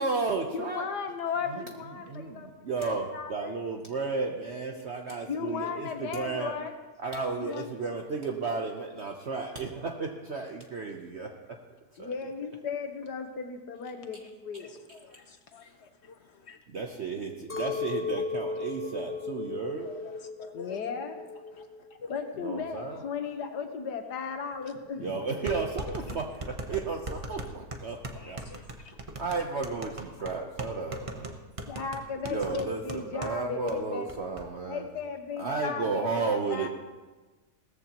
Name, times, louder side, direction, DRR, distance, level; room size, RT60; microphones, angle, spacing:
voice 1, 0.0-0.9 1.5-1.6 2.0-6.5 7.0-11.3 12.0-12.1 15.6-15.7 16.7-19.9 22.4-23.0 25.0-26.2 26.7-28.0 28.2-28.4 29.2-31.4 32.2-34.9 35.4-36.7, right 4 dB, 50° right, 2 dB, 1.0 m, -33 dB
voice 2, 0.5-3.6 5.3-6.7 7.4-7.7 12.0-14.8 20.5-21.4 22.1-25.1 31.7-34.1 34.7-36.7, left 5 dB, 85° left, 6 dB, 1.7 m, -36 dB
voice 3, 14.6-16.6 18.5-19.1 19.6-20.8 21.5-22.1 24.6-24.8 25.2-25.6 25.9-26.2 27.3-27.5 28.1-29.0 29.8-29.9 31.1-31.3 32.5-32.6, left 4 dB, 50° left, 8 dB, 0.9 m, -48 dB
Chink clink, 17.5-21.9 22.1-22.9, left 4 dB, 10° left, 1.0 m, -36 dB
sound 1, 24.5-24.6 25.5-33.4 33.7-33.8 34.1-34.4, right 2 dB, 25° right, 0.9 m, -39 dB
18.0 x 14.0 x 3.0 m, 1.3 s
omnidirectional pair, 1.7 m